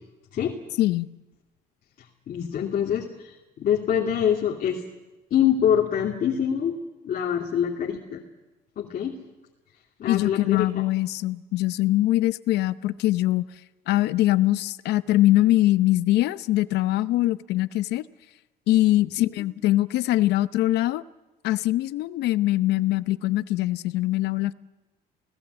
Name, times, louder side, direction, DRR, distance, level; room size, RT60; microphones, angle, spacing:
voice 1, 2.3-4.8 5.3-6.8 7.0-8.2 8.8-9.2 10.0-10.7 19.0-19.1, left 9 dB, 55° left, -1 dB, 2.7 m, -25 dB
voice 2, 10.1-13.4 13.9-18.0 18.7-21.0 21.4-24.5, left 15 dB, 85° left, 15 dB, 0.8 m, -22 dB
29.5 x 18.0 x 8.1 m, 1.1 s
cardioid pair, 110°, 17 cm